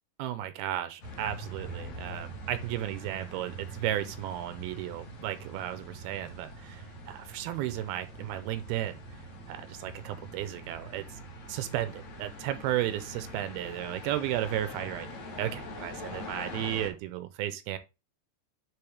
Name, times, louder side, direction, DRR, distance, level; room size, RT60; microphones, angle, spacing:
voice 1, 0.2-9.0 9.5-11.2 11.5-15.1 15.4-17.8, right 12 dB, 85° right, 2.5 m, -34 dB
sound 1, 1.0-16.9, equal, 50° left, 2.8 m, -43 dB
9.9 x 3.9 x 3.5 m
omnidirectional pair, 4.6 m